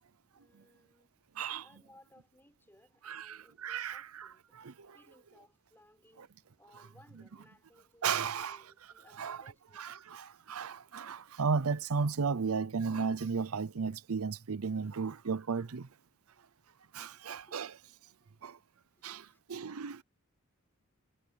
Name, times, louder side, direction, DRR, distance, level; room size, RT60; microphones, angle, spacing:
voice 1, 0.3-1.1 1.6-4.5 4.9-9.8 17.3-17.6 18.2-18.3 19.0-19.4, left 1 dB, 10° left, 5.9 m, -63 dB
voice 2, 1.3-1.7 3.0-5.0 6.2-6.3 8.0-8.6 9.1-9.4 9.8-15.9 16.9-17.8 18.4-18.6 19.0-20.0, right 5 dB, 85° right, 0.7 m, -35 dB
head